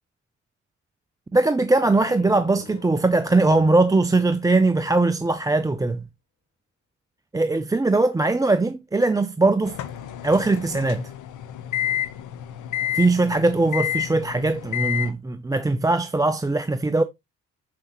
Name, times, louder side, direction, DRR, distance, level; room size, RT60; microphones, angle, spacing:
voice 1, 1.3-6.0 7.3-9.8 10.2-11.1 12.9-17.0, right 2 dB, 10° right, 0.5 m, -20 dB
sound 1, 1.5-5.2, left 7 dB, 60° left, 2.0 m, -46 dB
sound 2, 9.6-15.1, left 11 dB, 80° left, 1.0 m, -30 dB
6.7 x 5.9 x 3.0 m
cardioid pair, 90°, 30 cm